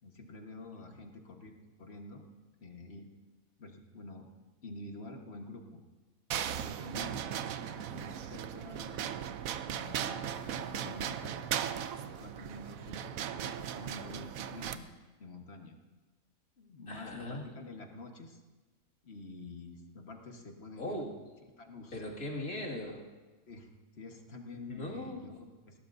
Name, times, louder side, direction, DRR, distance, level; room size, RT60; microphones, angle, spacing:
voice 1, 0.0-1.5 1.8-2.2 2.6-3.1 3.6-4.3 4.6-5.8 6.6-7.3 7.6-9.2 9.7-11.5 12.0-14.9 15.2-15.8 16.6-18.4 19.0-21.0 21.6-22.0 23.5-25.8, left 2 dB, 50° left, 3 dB, 1.6 m, -48 dB
sound 1, 6.3-14.8, right 9 dB, 80° right, 1.1 m, -37 dB
voice 2, 16.9-17.5 20.8-21.2 21.9-23.0 24.7-25.2, left 1 dB, 80° left, -2 dB, 2.7 m, -39 dB
20.0 x 17.5 x 2.6 m, 1.3 s
omnidirectional pair, 1.4 m